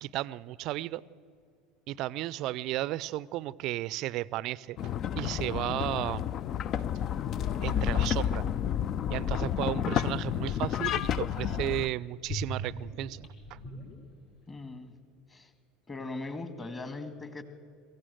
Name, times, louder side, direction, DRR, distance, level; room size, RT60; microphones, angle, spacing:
voice 1, 0.0-1.0 1.9-4.8 5.2-6.2 7.6-8.5 9.1-13.6, right 15 dB, 50° right, 21 dB, 0.5 m, -34 dB
sound 1, 4.8-11.9, left 9 dB, 40° left, 0.5 m, -30 dB
sound 2, 11.1-11.8 12.2-14.5 14.7-14.8, equal, 55° left, 5.5 m, -40 dB
voice 2, 14.5-14.9 15.3-15.5 15.9-17.4, left 3 dB, 20° left, 10 dB, 1.9 m, -39 dB
23.0 x 15.5 x 7.9 m, 2.2 s
figure-of-eight pair, 70°, 0 cm